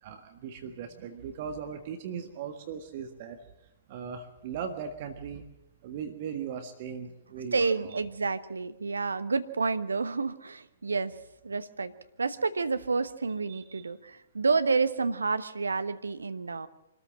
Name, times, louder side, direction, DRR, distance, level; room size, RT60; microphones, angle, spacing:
voice 1, 0.0-3.4 3.9-5.4 5.8-8.0 13.5-13.9, right 7 dB, 40° right, 6 dB, 1.6 m, -38 dB
voice 2, 7.5-11.1 11.4-11.9 12.2-16.7, right 4 dB, 70° right, 12 dB, 1.1 m, -29 dB
25.0 x 13.5 x 7.6 m, 0.90 s
figure-of-eight pair, 120°, 0 cm